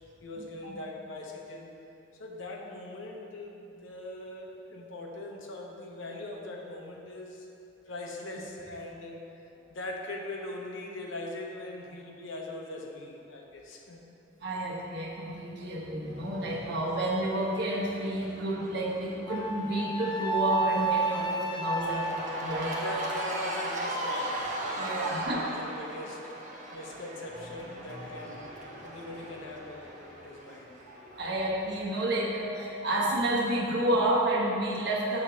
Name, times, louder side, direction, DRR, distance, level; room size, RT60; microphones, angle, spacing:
voice 1, 0.2-1.8 2.2-7.5 7.9-9.2 9.7-14.0 21.7-22.5 22.8-30.7, left 2 dB, 80° left, 0 dB, 1.0 m, -41 dB
voice 2, 14.4-22.0 22.4-22.8 24.8-25.4 30.9-35.2, right 1 dB, 60° right, -4 dB, 1.2 m, -30 dB
sound 1, 15.7-20.9 27.1-32.8, equal, 5° left, 0.9 m, -51 dB
Cheering / Crowd, 16.1-31.4, right 1 dB, 40° right, 0.9 m, -39 dB
Wind instrument woodwind instrument, 19.3-23.6, right 2 dB, 25° left, 0.4 m, -32 dB
6.3 x 4.4 x 6.2 m, 2.7 s
head